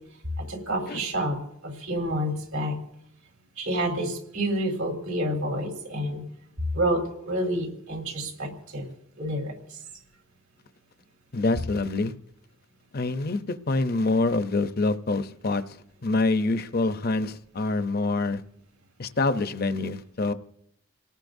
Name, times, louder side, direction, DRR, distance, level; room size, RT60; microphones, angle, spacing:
voice 1, 0.4-1.4 1.6-2.8 3.6-6.2 6.7-8.9 9.2-9.8, right 1 dB, 85° right, 1 dB, 4.3 m, -29 dB
voice 2, 11.3-12.1 12.9-15.8 16.0-18.4 19.0-20.3, left 3 dB, 45° left, 10 dB, 0.7 m, -26 dB
29.0 x 18.0 x 2.7 m, 0.74 s
head